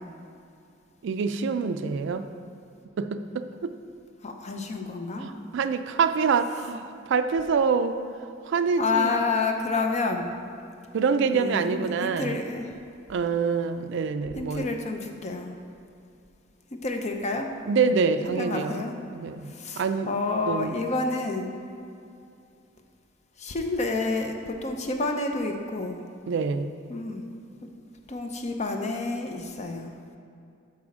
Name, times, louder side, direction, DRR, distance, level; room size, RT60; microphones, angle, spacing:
voice 1, 1.0-2.2 3.0-3.7 5.2-8.0 8.5-9.1 10.9-12.4 13.1-14.7 17.7-18.8 19.1-20.2 20.5-20.8 26.3-26.7, right 5 dB, 65° right, 10 dB, 0.4 m, -26 dB
voice 2, 4.2-5.3 8.8-10.3 11.2-12.7 14.3-15.5 16.7-17.5 18.3-18.9 19.5-21.5 23.4-26.0 26.9-27.2 28.1-29.9, left 3 dB, 35° left, 4 dB, 0.6 m, -29 dB
6.1 x 4.2 x 6.0 m, 2.5 s
head